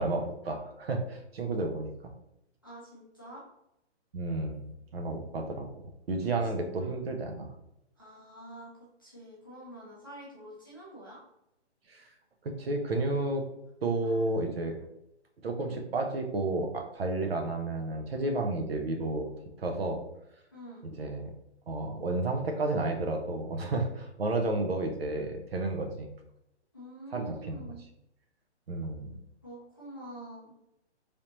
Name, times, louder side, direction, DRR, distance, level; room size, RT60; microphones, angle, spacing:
voice 1, 0.0-2.1 4.1-5.7 6.1-7.5 11.9-12.1 12.4-13.4 13.8-14.8 15.4-19.3 19.6-20.0 21.0-21.3 21.7-26.1 27.1-27.6 28.7-29.2, right 2 dB, 55° right, 4 dB, 0.6 m, -31 dB
voice 2, 2.6-3.4 6.8-7.0 8.0-8.7 9.0-11.2 14.0-14.6 20.5-20.8 26.7-27.8 29.4-30.5, right 1 dB, 20° left, -8 dB, 0.5 m, -47 dB
3.3 x 2.7 x 2.8 m, 0.84 s
hypercardioid pair, 175°, 35 cm